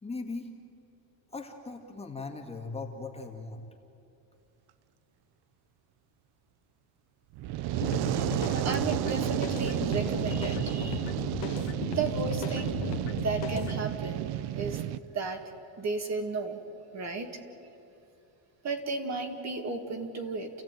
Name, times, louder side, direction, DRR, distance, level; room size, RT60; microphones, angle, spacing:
voice 1, 0.0-0.5 1.3-3.6, left 3 dB, 10° left, 1 dB, 1.8 m, -39 dB
Fire, 7.3-15.0, right 13 dB, 50° right, 0.7 m, -31 dB
voice 2, 7.7-11.1 11.9-14.3 14.5-14.8 15.1-15.4 15.8-16.6 16.9-17.4 18.6-20.5, right 4 dB, 35° right, 5 dB, 2.1 m, -34 dB
sound 1, 7.8-13.8, left 9 dB, 60° left, 1.7 m, -36 dB
29.0 x 15.5 x 9.1 m, 2.8 s
cardioid pair, 160°, 49 cm